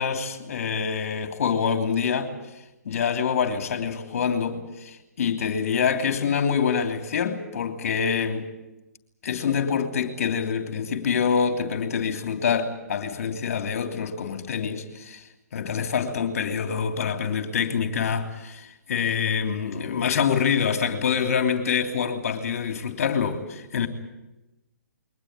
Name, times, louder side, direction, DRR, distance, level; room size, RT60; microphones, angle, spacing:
voice 1, 0.0-2.3 2.8-8.5 9.2-15.2 15.5-23.9, left 6 dB, 55° left, 3.1 m, -26 dB
22.5 x 19.0 x 9.7 m
figure-of-eight pair, 135°, 9 cm